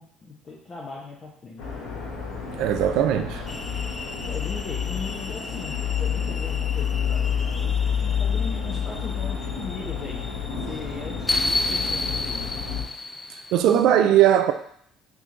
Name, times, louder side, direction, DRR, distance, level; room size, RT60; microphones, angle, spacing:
voice 1, 0.0-1.9 4.2-10.2 10.6-12.4, left 3 dB, 40° left, 0.8 m, -39 dB
sound 1, 1.6-12.8, left 7 dB, 70° left, 1.1 m, -29 dB
voice 2, 2.6-3.4 13.5-14.5, right 10 dB, 70° right, 0.3 m, -19 dB
sound 2, 3.5-13.8, left 2 dB, 20° left, 0.3 m, -33 dB
3.6 x 3.0 x 3.7 m
hypercardioid pair, 65°, 0 cm